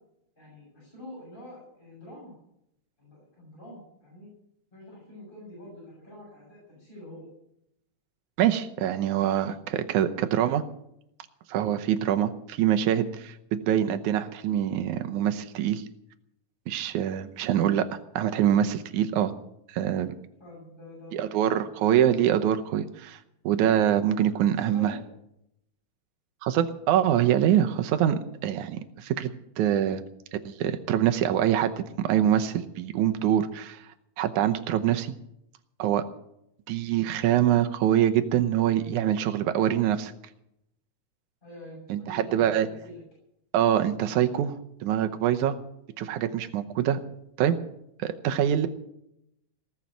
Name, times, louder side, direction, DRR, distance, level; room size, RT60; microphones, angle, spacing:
voice 1, 0.4-2.3 3.0-4.3 4.7-7.3 20.4-21.2 21.5-21.8 24.5-25.0 41.4-43.0, left 1 dB, 15° left, -6 dB, 7.3 m, -46 dB
voice 2, 8.4-10.6 11.5-15.8 16.7-17.9 18.2-19.3 19.7-20.1 21.1-23.2 23.4-24.9 26.4-29.3 29.6-30.0 30.5-33.8 34.2-35.1 35.8-36.0 36.7-40.1 41.9-42.7 43.5-44.5 44.8-45.6 46.0-47.0 47.4-47.6 48.0-48.7, right 10 dB, 90° right, 8 dB, 2.3 m, -24 dB
18.5 x 7.4 x 9.3 m, 0.79 s
omnidirectional pair, 3.4 m